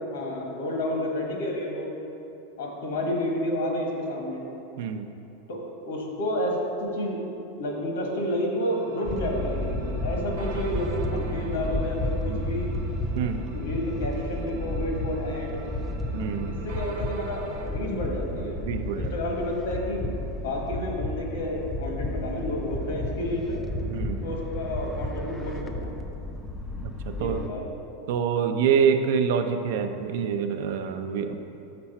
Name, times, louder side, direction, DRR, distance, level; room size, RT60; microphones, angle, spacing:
voice 1, 0.0-1.9 2.6-4.4 5.5-5.6 5.8-7.2 7.6-12.7 13.5-15.6 16.6-18.6 18.9-23.6 24.2-25.9 27.2-27.7, left 1 dB, 85° left, 0 dB, 1.4 m, -30 dB
voice 2, 4.8-5.1 12.2-12.4 13.1-13.4 16.1-16.6 18.7-19.1 23.9-24.3 26.8-27.4 28.1-31.4, right 7 dB, 60° right, 7 dB, 0.5 m, -26 dB
sound 1, 8.6-17.7, right 3 dB, 85° right, 0.8 m, -44 dB
sound 2, 9.0-27.5, left 1 dB, 5° left, 0.3 m, -32 dB
5.9 x 4.4 x 5.7 m, 2.8 s
supercardioid pair, 160°, 0 cm